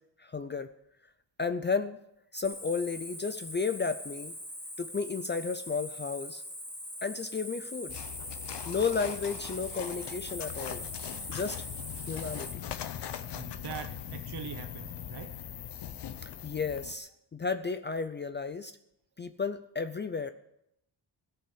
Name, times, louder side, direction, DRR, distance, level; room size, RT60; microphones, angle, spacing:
voice 1, 0.2-0.7 1.4-2.0 2.3-4.4 4.8-6.4 7.0-8.0 8.7-10.9 11.3-11.6 12.1-12.5 16.2-18.7 19.2-20.3, left 5 dB, 25° left, 10 dB, 0.5 m, -33 dB
Cricket, 2.4-12.5, equal, 5° left, 2.6 m, -42 dB
sound 1, 7.9-16.9, left 9 dB, 75° left, 0.9 m, -40 dB
voice 2, 13.3-15.4, right 9 dB, 70° right, 7 dB, 0.8 m, -43 dB
17.0 x 5.8 x 7.9 m, 0.80 s
wide cardioid pair, 145°, 42 cm